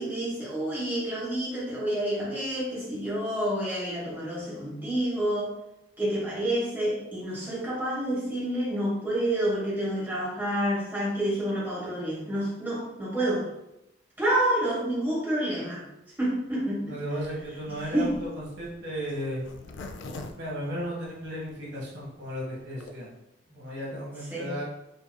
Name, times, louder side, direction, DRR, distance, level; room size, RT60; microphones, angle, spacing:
voice 1, 0.0-5.5 6.0-13.5 14.2-15.8 16.2-17.0 17.9-18.1 24.3-24.6, right 1 dB, 10° right, -7 dB, 1.2 m, -28 dB
voice 2, 16.9-19.4 20.3-23.1 23.5-24.6, equal, 75° right, -5 dB, 1.3 m, -34 dB
Zipper (clothing), 17.2-21.5 22.0-22.1 22.3-22.4 22.6-22.9, left 2 dB, 85° left, 0.4 m, -43 dB
5.0 x 2.8 x 2.2 m, 0.89 s
head